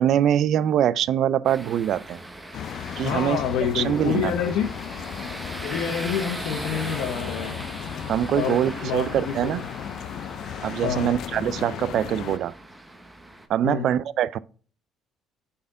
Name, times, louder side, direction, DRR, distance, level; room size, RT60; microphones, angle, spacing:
voice 1, 0.0-2.2 3.0-3.4 3.7-4.3 8.1-9.6 10.6-12.5 13.5-14.4, right 10 dB, 60° right, 0.3 m, -23 dB
sound 1, 1.4-13.5, right 1 dB, 10° right, 0.9 m, -39 dB
sound 2, 2.5-12.4, left 10 dB, 60° left, 0.3 m, -35 dB
voice 2, 3.0-4.7 5.6-7.6 8.3-9.6 10.8-11.1 13.6-13.9, left 8 dB, 85° left, 1.0 m, -28 dB
9.1 x 4.2 x 3.7 m
cardioid pair, 125°, 0 cm